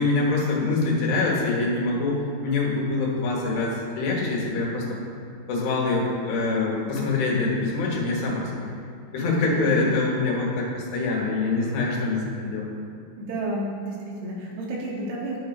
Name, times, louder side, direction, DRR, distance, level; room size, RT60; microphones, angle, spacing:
voice 1, 0.0-4.8 5.5-8.7 9.1-12.7, left 3 dB, 85° left, -3 dB, 3.3 m, -25 dB
voice 2, 9.5-9.9 13.2-15.4, right 1 dB, 80° right, -4 dB, 3.1 m, -31 dB
12.0 x 5.2 x 2.4 m, 2.5 s
omnidirectional pair, 4.6 m